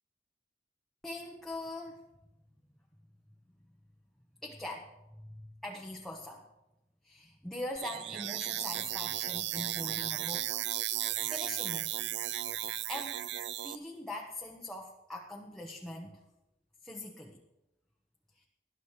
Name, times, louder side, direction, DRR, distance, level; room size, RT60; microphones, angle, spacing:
voice 1, 1.0-2.0 4.4-5.3 5.6-6.4 7.0-10.6 11.3-12.1 12.5-13.2 13.6-16.1 16.8-17.4 18.4-18.5, left 1 dB, ahead, -1 dB, 1.1 m, -42 dB
sound 1, 7.8-13.8, right 13 dB, 75° right, 0.4 m, -35 dB
20.0 x 11.5 x 3.3 m, 0.94 s
head